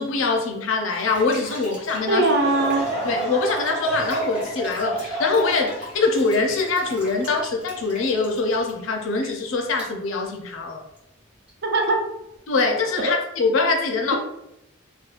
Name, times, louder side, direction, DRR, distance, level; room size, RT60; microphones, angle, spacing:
voice 1, 0.0-2.3 3.0-10.8 12.5-14.2, left 3 dB, 70° left, 2 dB, 0.5 m, -23 dB
sound 1, 0.9-9.9 10.5-10.6 10.8-11.1 11.5-11.6 11.8-12.4, equal, 5° right, 1.0 m, -42 dB
voice 2, 2.1-2.9 11.6-12.0 13.0-13.1, right 2 dB, 55° right, 2 dB, 0.5 m, -20 dB
Laughter / Crowd, 2.3-7.8 8.3-8.4 9.2-9.5, right 2 dB, 30° right, 1.0 m, -30 dB
2.7 x 2.2 x 2.4 m, 0.84 s
head